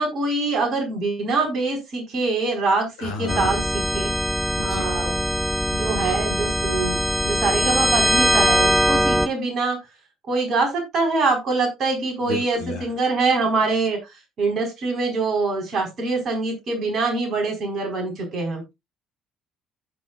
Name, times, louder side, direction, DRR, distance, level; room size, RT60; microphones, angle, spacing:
voice 1, 0.0-4.1 4.6-5.2 5.7-9.8 10.3-18.6, right 3 dB, 50° right, 2 dB, 4.4 m, -24 dB
voice 2, 3.0-3.5 4.6-4.9 12.2-12.9, left 5 dB, 75° left, 3 dB, 2.4 m, -32 dB
sound 1, 3.3-9.3, equal, 5° right, 0.7 m, -21 dB
15.5 x 5.2 x 2.4 m, 0.21 s
figure-of-eight pair, 55°, 0 cm